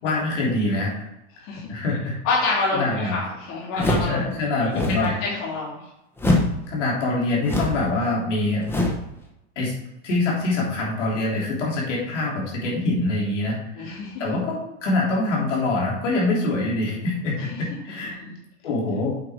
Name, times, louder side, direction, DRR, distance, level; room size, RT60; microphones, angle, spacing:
voice 1, 0.0-0.9 1.5-2.2 2.7-3.2 3.7-5.1 6.7-8.6 9.6-9.7 10.0-18.2 18.6-19.1, left 2 dB, 80° left, -3 dB, 3.5 m, -25 dB
voice 2, 2.2-5.8 13.8-14.2 17.5-17.6 18.2-18.3, left 3 dB, 35° left, -4 dB, 3.1 m, -28 dB
sound 1, 3.8-4.2 4.7-5.1 6.2-6.6 7.4-7.9 8.7-9.1, left 1 dB, 5° left, 0.9 m, -23 dB
8.2 x 5.7 x 5.0 m, 0.87 s
supercardioid pair, 150°, 36 cm